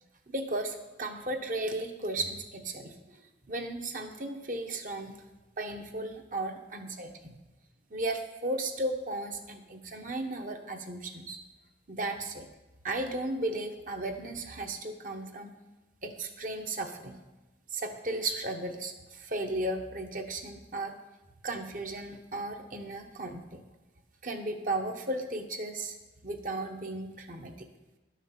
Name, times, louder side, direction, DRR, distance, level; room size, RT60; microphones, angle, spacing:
voice 1, 0.3-3.0 3.5-5.2 5.6-7.3 7.9-11.4 11.9-12.5 12.8-15.5 16.0-17.2 17.7-20.9 21.4-23.6 24.2-26.0 26.2-27.7, right 2 dB, 50° right, 4 dB, 1.1 m, -35 dB
11.0 x 6.3 x 7.3 m, 1.1 s
head